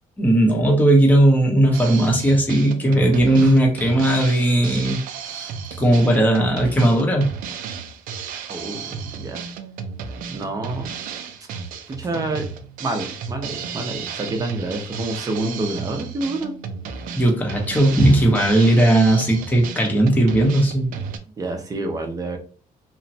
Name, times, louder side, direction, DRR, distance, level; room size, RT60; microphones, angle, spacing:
voice 1, 0.2-5.0 5.3-5.5 5.8-7.3 17.2-20.9, right 1 dB, 10° left, 0 dB, 0.7 m, -17 dB
Drum kit, 1.7-21.2, right 6 dB, 80° right, 0.4 m, -33 dB
voice 2, 8.5-9.4 10.3-10.9 11.9-12.5 12.8-16.5 21.4-22.4, right 2 dB, 25° right, 3 dB, 0.6 m, -28 dB
3.0 x 2.1 x 2.7 m, 0.39 s
cardioid pair, 140°, 14 cm